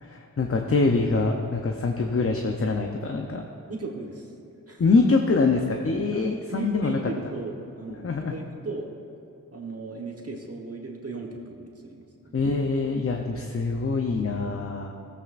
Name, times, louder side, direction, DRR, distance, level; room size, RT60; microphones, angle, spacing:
voice 1, 0.0-3.4 4.8-7.0 8.0-8.4 12.3-14.9, left 3 dB, 40° left, 3 dB, 0.7 m, -24 dB
voice 2, 3.7-4.3 4.7-4.8 6.1-6.2 6.5-8.9 9.5-12.4, right 3 dB, 45° right, 0 dB, 1.2 m, -37 dB
15.5 x 8.4 x 2.5 m, 2.7 s
cardioid pair, 55°, 34 cm